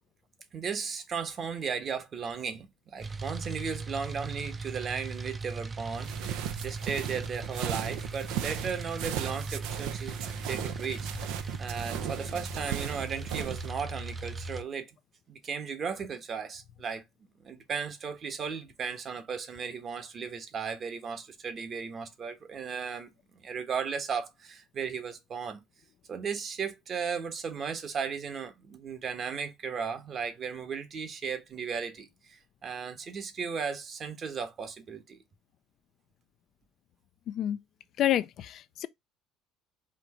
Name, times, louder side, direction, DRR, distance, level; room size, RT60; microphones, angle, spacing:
voice 1, 0.5-11.1 11.6-14.9 15.3-17.0 17.4-23.1 23.4-25.6 26.1-35.2, right 6 dB, 40° right, 1.1 m, -36 dB
sound 1, 3.0-14.6, right 3 dB, 20° right, 0.6 m, -38 dB
sound 2, 5.9-13.7, right 11 dB, 80° right, 0.6 m, -37 dB
voice 2, 37.3-37.6 38.0-38.9, left 12 dB, 55° left, 0.4 m, -28 dB
4.4 x 2.6 x 4.2 m
cardioid pair, 105°, 0 cm